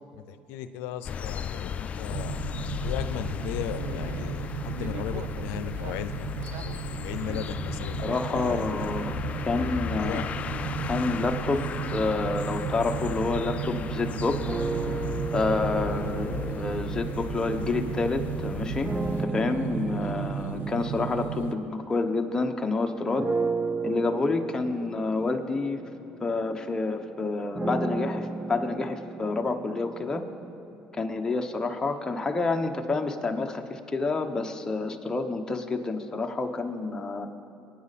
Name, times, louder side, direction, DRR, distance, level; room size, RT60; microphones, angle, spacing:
voice 1, 0.3-2.4 2.8-6.3 6.6-8.7 9.9-10.3 15.9-16.1, left 10 dB, 85° left, 10 dB, 0.6 m, -36 dB
sound 1, 1.0-19.2, left 7 dB, 40° left, 0.4 m, -36 dB
sound 2, 2.1-21.5, right 10 dB, 60° right, 0.6 m, -35 dB
voice 2, 8.0-9.1 9.5-10.2 10.8-14.4 15.3-23.3 23.8-25.8 26.2-30.2 30.9-37.3, left 3 dB, 20° left, 4 dB, 1.0 m, -28 dB
sound 3, 14.4-18.0 18.8-22.6 23.2-31.1, right 3 dB, 20° right, 0.5 m, -35 dB
21.5 x 9.9 x 4.2 m, 2.8 s
cardioid pair, 105°, 4 cm